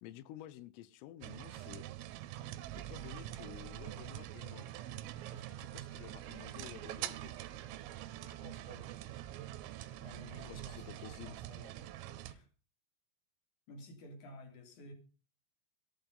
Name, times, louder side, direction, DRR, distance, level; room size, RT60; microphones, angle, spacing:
voice 1, 0.0-1.8 2.7-4.8 5.3-7.4 10.4-11.4, left 13 dB, 80° left, 3.4 m, -52 dB
sound 1, 1.2-12.3, right 13 dB, 90° right, 3.6 m, -45 dB
Trumpet, 3.3-11.3, right 5 dB, 45° right, 2.0 m, -65 dB
voice 2, 8.2-9.1 10.0-12.5 13.7-14.9, left 1 dB, 45° left, 3.8 m, -54 dB
14.5 x 11.0 x 5.4 m
omnidirectional pair, 6.0 m